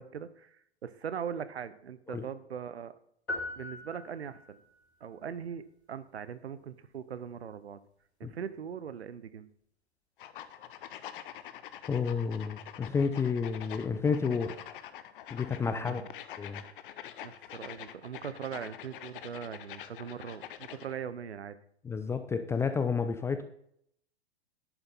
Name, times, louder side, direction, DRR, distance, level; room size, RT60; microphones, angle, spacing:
voice 1, 0.0-2.9 3.6-4.6 5.0-5.6 5.9-7.8 8.2-9.5 15.7-16.1 17.2-21.5, right 7 dB, 70° right, 14 dB, 0.9 m, -40 dB
sound 1, 3.3-4.7, left 2 dB, 75° left, 3.3 m, -40 dB
sound 2, 10.2-20.9, left 11 dB, 50° left, 0.9 m, -46 dB
voice 2, 11.9-14.6 15.3-16.0 16.4-16.6 21.8-23.4, left 5 dB, 10° left, 9 dB, 0.4 m, -30 dB
11.0 x 8.7 x 4.1 m, 0.70 s
figure-of-eight pair, 100°, 33 cm